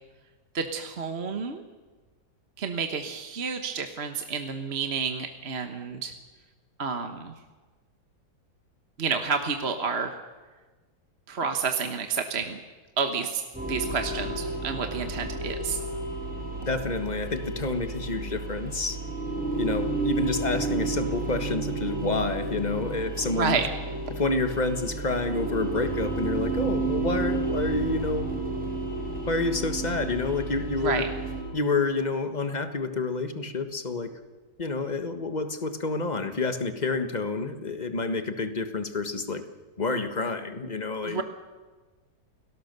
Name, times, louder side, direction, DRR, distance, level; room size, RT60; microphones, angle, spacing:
voice 1, 0.5-1.6 2.6-6.1 6.8-7.3 9.0-10.2 11.3-12.6 13.0-13.4 13.7-15.8 23.2-23.7 30.8-31.1 41.0-41.2, right 5 dB, 40° right, 6 dB, 1.4 m, -30 dB
sound 1, 13.5-31.4, right 3 dB, 5° right, 5.6 m, -31 dB
voice 2, 16.7-19.0 19.6-23.6 24.2-28.3 29.3-31.1 31.5-34.1 34.6-39.4 39.8-41.2, left 3 dB, 25° left, 9 dB, 1.4 m, -29 dB
29.0 x 18.5 x 6.8 m, 1.3 s
omnidirectional pair, 1.9 m